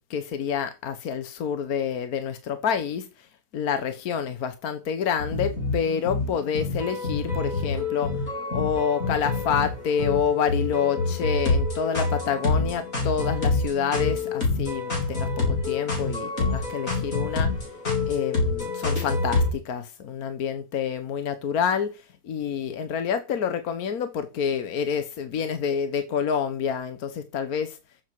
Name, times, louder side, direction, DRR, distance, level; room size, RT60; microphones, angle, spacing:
voice 1, 0.1-3.3 3.5-8.1 8.5-17.5 18.1-27.8, left 7 dB, 75° left, 1.5 m, -28 dB
sound 1, 5.2-19.5, left 3 dB, 60° left, 5.0 m, -27 dB
14.0 x 7.4 x 4.6 m
omnidirectional pair, 1.6 m